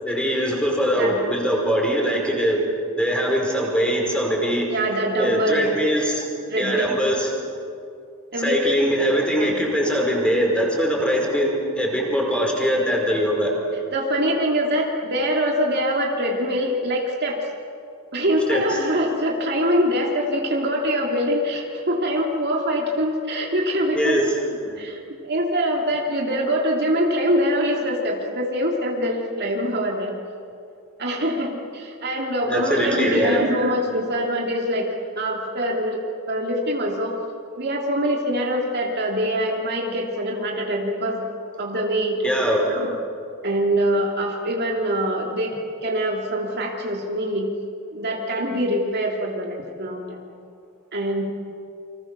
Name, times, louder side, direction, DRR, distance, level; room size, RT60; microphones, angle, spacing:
voice 1, 0.0-2.6 3.0-4.7 5.2-6.3 6.6-7.3 8.4-13.5 18.5-18.6 23.9-24.2 24.6-24.8 32.4-33.4 42.2-42.7, equal, 5° left, 0 dB, 5.0 m, -22 dB
voice 2, 4.7-5.7 6.5-6.9 8.3-8.6 9.4-9.5 13.9-17.4 18.1-30.1 31.0-34.9 35.2-36.0 36.3-37.1 37.6-41.2 41.6-42.2 42.7-43.0 43.4-45.6 45.8-47.5 47.9-50.3 50.9-51.2, equal, 50° right, 0 dB, 2.9 m, -24 dB
29.5 x 25.0 x 6.8 m, 2.4 s
head